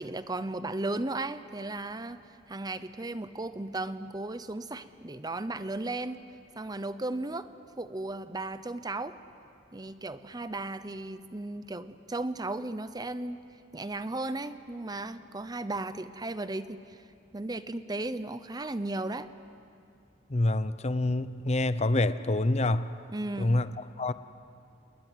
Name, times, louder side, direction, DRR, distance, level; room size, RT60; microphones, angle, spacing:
voice 1, 0.0-2.2 2.5-6.2 6.6-7.5 7.8-9.2 9.7-13.4 13.7-17.0 17.3-19.3 23.1-23.6, right 2 dB, 20° right, 12 dB, 0.8 m, -35 dB
voice 2, 20.3-22.9 23.4-24.1, left 2 dB, 35° left, 13 dB, 0.8 m, -27 dB
29.0 x 21.0 x 9.4 m, 2.6 s
head